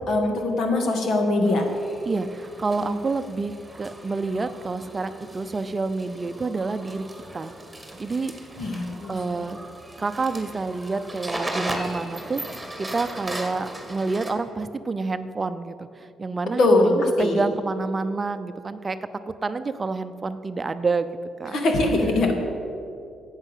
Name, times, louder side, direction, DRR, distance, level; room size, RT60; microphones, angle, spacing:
voice 1, 0.1-1.6 2.8-3.0 8.6-9.5 16.6-17.4 21.5-22.3, left 2 dB, 70° left, 3 dB, 2.1 m, -22 dB
sound 1, 1.4-14.3, right 1 dB, 5° right, 2.1 m, -37 dB
voice 2, 2.1-7.1 7.3-7.5 8.0-8.7 9.1-9.6 10.0-12.4 12.8-19.0 19.3-21.1 21.4-21.6, right 3 dB, 30° right, 10 dB, 0.6 m, -28 dB
11.0 x 8.2 x 8.3 m, 2.5 s
cardioid pair, 90°, 0 cm